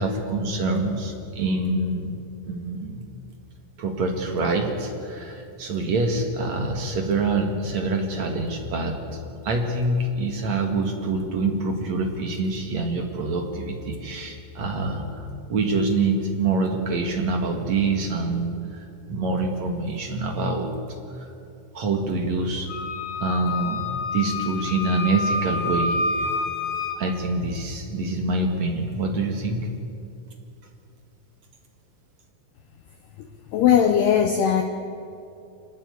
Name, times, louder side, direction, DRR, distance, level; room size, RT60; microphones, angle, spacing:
voice 1, 0.0-3.1 3.8-9.2 9.4-20.7 21.1-21.3 21.7-22.7 23.2-26.3 27.0-29.7, right 3 dB, 60° right, 3 dB, 1.9 m, -26 dB
Wind instrument woodwind instrument, 22.7-27.0, left 3 dB, 55° left, 1.9 m, -28 dB
voice 2, 33.5-34.6, left 8 dB, 75° left, 6 dB, 2.4 m, -18 dB
26.0 x 19.5 x 8.3 m, 2.6 s
omnidirectional pair, 5.9 m